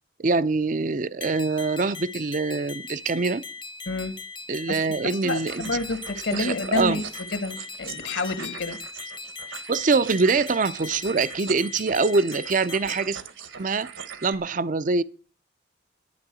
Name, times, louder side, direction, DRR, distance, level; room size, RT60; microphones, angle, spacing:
voice 1, 0.2-3.4 4.5-5.6 6.3-7.0 9.7-13.2 13.6-13.9 14.2-15.0, right 4 dB, 40° right, 0.5 m, -24 dB
sound 1, 1.2-13.1, left 4 dB, 25° left, 0.7 m, -39 dB
voice 2, 5.2-7.0 7.3-8.8, left 2 dB, 65° left, 1.8 m, -29 dB
sound 2, 5.2-14.3, right 7 dB, 75° right, 1.3 m, -41 dB
11.5 x 9.3 x 6.2 m
head